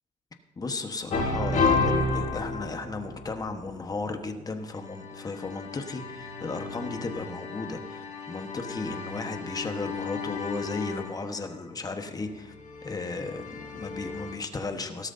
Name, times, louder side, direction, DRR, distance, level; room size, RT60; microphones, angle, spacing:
voice 1, 0.6-12.5 12.8-15.1, left 3 dB, 20° left, 6 dB, 1.2 m, -35 dB
sound 1, 1.1-3.5 4.7-11.4 12.4-14.3, left 3 dB, 50° left, 3.9 m, -32 dB
16.0 x 13.5 x 2.7 m, 1.2 s
cardioid pair, 110°, 17 cm